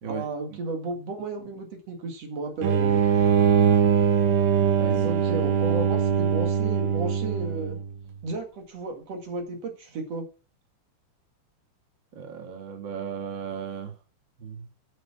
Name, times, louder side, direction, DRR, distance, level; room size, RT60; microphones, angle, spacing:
voice 1, 0.0-3.1 5.0-7.8 8.2-10.2, right 3 dB, 50° right, 2.2 m, -33 dB
sound 1, 2.6-8.0, right 7 dB, 90° right, 4.1 m, -22 dB
voice 2, 4.8-5.2 12.1-13.9 14.4-14.7, right 7 dB, 70° right, 1.1 m, -35 dB
9.5 x 8.4 x 6.0 m
omnidirectional pair, 5.3 m